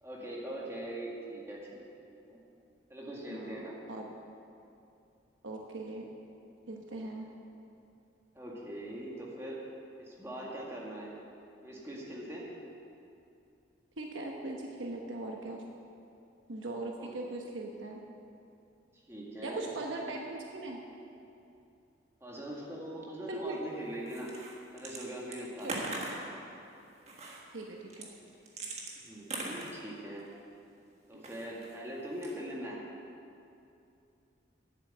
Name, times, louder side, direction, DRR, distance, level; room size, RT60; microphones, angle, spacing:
voice 1, 0.0-1.8 2.1-2.4 2.9-3.8 8.4-9.6 10.0-11.1 11.6-12.5 17.0-17.1 19.1-19.7 20.0-20.2 22.2-24.3 24.7-25.9 29.0-30.3 31.1-32.8, right 1 dB, 15° right, -4 dB, 2.0 m, -41 dB
voice 2, 3.3-3.6 3.9-4.1 5.4-6.1 6.7-7.3 14.0-15.6 16.5-18.0 19.4-20.8 23.3-23.6 25.6-26.0 27.5-28.1 31.1-31.2, right 2 dB, 80° right, 1 dB, 1.1 m, -40 dB
sound 1, 24.1-25.0 25.3-26.3 27.1-27.4 27.9-30.3 31.1-31.8 32.1-32.6, right 2 dB, 35° right, 1.5 m, -40 dB
11.0 x 8.3 x 7.9 m, 2.7 s
head